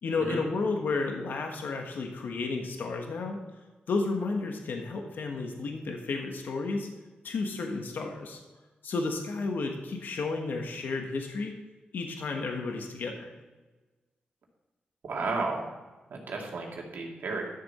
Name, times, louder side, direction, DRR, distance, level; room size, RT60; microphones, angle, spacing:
voice 1, 0.0-3.4 3.9-6.9 7.2-8.4 8.8-11.5 11.9-13.3, left 3 dB, 75° left, 2 dB, 1.3 m, -32 dB
voice 2, 15.0-15.7 16.1-17.4, right 3 dB, 75° right, -1 dB, 2.4 m, -33 dB
12.0 x 7.0 x 4.2 m, 1.2 s
cardioid pair, 70°, 3 cm